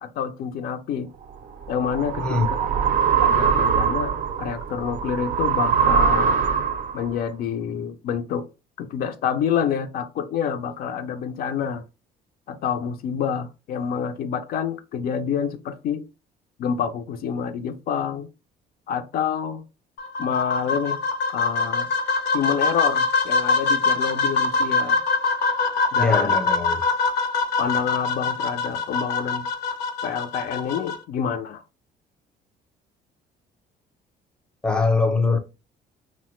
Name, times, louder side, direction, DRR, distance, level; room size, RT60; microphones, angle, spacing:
voice 1, 0.0-1.1 1.7-2.6 3.2-6.4 6.9-8.5 8.8-11.8 12.5-16.1 16.6-18.3 18.9-19.6 20.2-21.0 21.3-21.9 22.3-25.0 25.9-26.4 27.6-29.5 30.0-31.6, left 7 dB, 60° left, 0.4 m, -27 dB
sound 1, 1.3-7.1, right 7 dB, 50° right, 0.4 m, -22 dB
sound 2, 20.0-31.0, left 4 dB, 90° left, 0.7 m, -23 dB
voice 2, 26.0-26.8 34.6-35.4, left 3 dB, 5° left, 0.5 m, -22 dB
2.8 x 2.0 x 3.0 m
cardioid pair, 110°, 17 cm